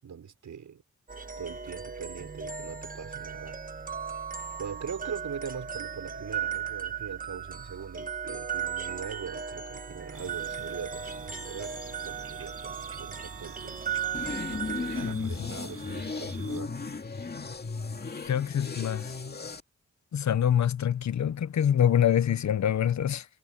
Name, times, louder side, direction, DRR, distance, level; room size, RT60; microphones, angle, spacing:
voice 1, 0.0-0.8 1.4-3.6 4.6-13.8 14.5-16.7, right 7 dB, 90° right, 6.0 m, -41 dB
sound 1, 1.1-15.2, right 7 dB, 30° right, 1.4 m, -36 dB
sound 2, 10.1-16.6, right 5 dB, 50° right, 6.8 m, -47 dB
sound 3, 14.1-19.6, left 4 dB, 35° left, 2.4 m, -35 dB
voice 2, 15.0-15.5 18.3-19.1 20.1-23.3, left 9 dB, 70° left, 0.9 m, -25 dB
wide cardioid pair, 140°, 29 cm